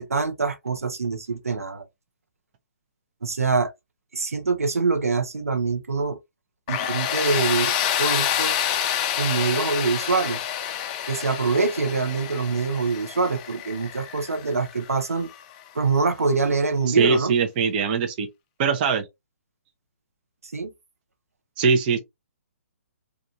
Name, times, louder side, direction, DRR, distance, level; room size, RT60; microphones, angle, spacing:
voice 1, 0.0-1.9 3.2-3.7 4.1-6.2 6.7-7.7 8.0-8.7 9.2-10.4 11.0-15.3 15.7-17.3 20.5-20.7, right 4 dB, 85° right, 0.8 m, -24 dB
Tools, 6.7-15.4, left 10 dB, 30° left, 0.4 m, -28 dB
voice 2, 16.9-18.3 18.6-19.1 21.6-22.0, right 5 dB, 40° right, 0.6 m, -21 dB
2.9 x 2.4 x 2.4 m
hypercardioid pair, 140°, 8 cm